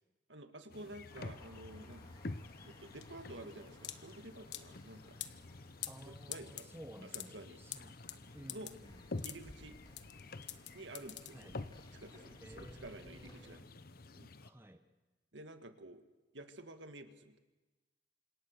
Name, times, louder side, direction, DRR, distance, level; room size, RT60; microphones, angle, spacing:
voice 1, 0.3-2.3 2.6-5.2 6.1-6.7 7.1-7.6 8.5-8.7 9.2-9.8 10.7-11.6 11.9-12.4 12.8-13.7 14.1-14.3 15.3-16.0 16.3-17.4, right 1 dB, 75° right, 8 dB, 1.9 m, -51 dB
sound 1, 0.7-14.5, left 2 dB, 55° left, 1.0 m, -50 dB
sound 2, 1.1-13.6, left 1 dB, 25° left, 4.4 m, -61 dB
sound 3, 1.9-11.9, left 12 dB, 70° left, 1.3 m, -48 dB
voice 2, 5.9-8.0 8.3-9.0 11.3-11.6 12.4-13.6 14.4-14.8, right 1 dB, 15° right, 7 dB, 1.2 m, -54 dB
29.5 x 26.5 x 6.6 m, 1.2 s
head